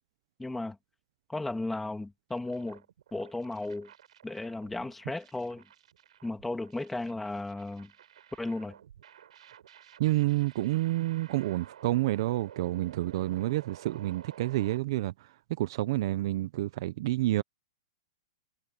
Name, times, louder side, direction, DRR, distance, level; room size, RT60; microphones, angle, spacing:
voice 1, 0.4-0.8 1.3-2.8 3.1-3.9 4.2-5.6 6.2-7.9 8.4-8.7, left 2 dB, 5° left, 2.2 m, -35 dB
sound 1, 2.3-14.8, right 10 dB, 75° right, 6.5 m, -53 dB
voice 2, 10.0-15.1 15.6-17.4, right 16 dB, 40° right, 0.5 m, -29 dB
supercardioid pair, 175°, 4 cm